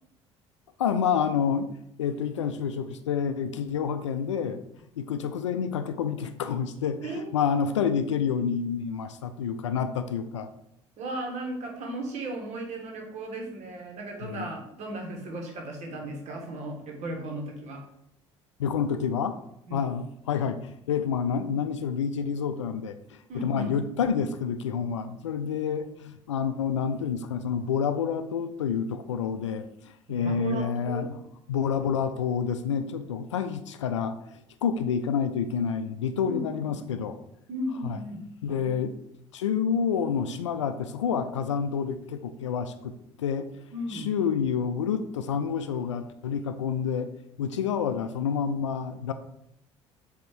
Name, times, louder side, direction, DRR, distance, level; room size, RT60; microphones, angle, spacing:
voice 1, 0.8-1.7 2.0-4.6 5.0-10.5 14.2-14.5 18.6-19.4 19.7-29.6 30.1-31.2 31.5-37.2 37.8-38.0 38.4-38.9 39.3-42.9 43.2-43.5 43.9-47.1 47.4-49.1, left 7 dB, 75° left, 10 dB, 0.4 m, -28 dB
voice 2, 7.0-7.3 11.0-17.8 19.7-19.8 23.3-23.7 30.1-31.1 36.2-36.9 37.5-38.8 43.7-44.1, right 1 dB, 45° right, 2 dB, 1.6 m, -36 dB
7.6 x 2.8 x 4.6 m, 0.77 s
figure-of-eight pair, 55°, 15 cm